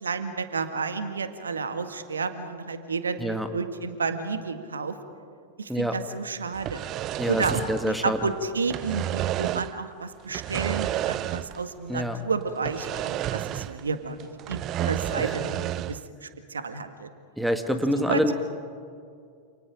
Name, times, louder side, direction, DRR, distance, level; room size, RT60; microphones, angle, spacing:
voice 1, 0.0-5.0 5.6-6.8 7.3-15.6 15.9-17.1 18.1-18.3, right 4 dB, 70° right, 9 dB, 1.8 m, -31 dB
sound 1, 6.5-8.3 8.6-9.8 10.3-11.7 12.0-12.1 12.7-13.9 14.2-16.1, right 13 dB, 35° right, 0.5 m, -31 dB
voice 2, 7.7-8.2 11.9-12.2 15.2-15.3 17.4-18.3, equal, ahead, 8 dB, 1.6 m, -26 dB
29.0 x 28.5 x 5.1 m, 2.3 s
figure-of-eight pair, 90°, 0 cm